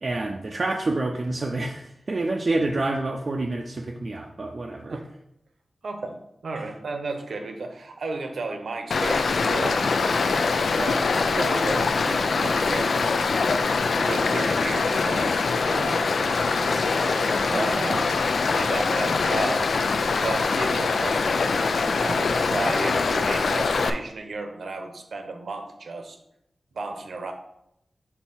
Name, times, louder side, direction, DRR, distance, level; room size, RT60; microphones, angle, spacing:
voice 1, 0.0-5.0 6.6-6.7, right 2 dB, 45° right, 1 dB, 0.5 m, -28 dB
voice 2, 5.8-6.2 6.4-9.8 10.2-13.2 13.9-16.1 17.4-18.1 18.5-19.8 20.2-26.2 26.7-27.3, right 3 dB, 80° right, 5 dB, 0.8 m, -33 dB
Stream, 8.9-23.9, left 4 dB, 85° left, 0.4 m, -23 dB
sound 1, 16.7-19.0, equal, 5° left, 0.5 m, -40 dB
4.4 x 4.0 x 5.5 m, 0.79 s
wide cardioid pair, 120°, 0 cm